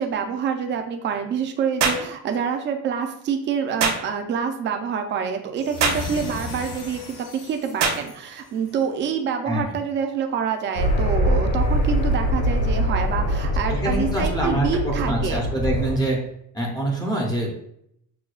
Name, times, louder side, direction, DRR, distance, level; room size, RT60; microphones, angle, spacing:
voice 1, 0.0-15.4, right 7 dB, 35° right, 5 dB, 0.4 m, -27 dB
sound 1, 1.8-2.1 3.8-4.0 5.8-6.1 7.8-8.0, right 5 dB, 50° right, 0.8 m, -22 dB
sound 2, 5.6-8.9, left 4 dB, 80° left, 1.0 m, -36 dB
sound 3, 10.8-15.9, equal, 55° left, 1.1 m, -23 dB
voice 2, 13.7-16.2 16.5-17.6, right 1 dB, 10° left, -2 dB, 0.5 m, -25 dB
6.2 x 2.2 x 2.3 m, 0.72 s
cardioid pair, 165°, 33 cm